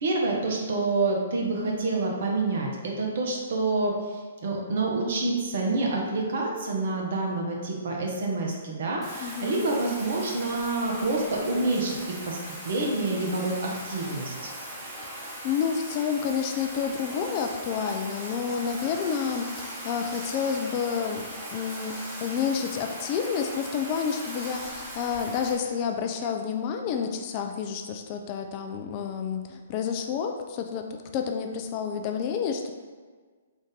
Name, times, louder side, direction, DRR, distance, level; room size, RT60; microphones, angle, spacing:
voice 1, 0.0-12.4 12.6-14.5, right 2 dB, 55° right, -1 dB, 0.8 m, -27 dB
Bathtub (filling or washing), 9.0-25.5, right 1 dB, 20° right, 1.1 m, -39 dB
voice 2, 9.2-9.5 15.4-21.3 21.5-21.9 22.2-30.9 31.1-32.7, left 7 dB, 35° left, 4 dB, 0.3 m, -29 dB
3.5 x 2.5 x 3.7 m, 1.5 s
figure-of-eight pair, 125°, 0 cm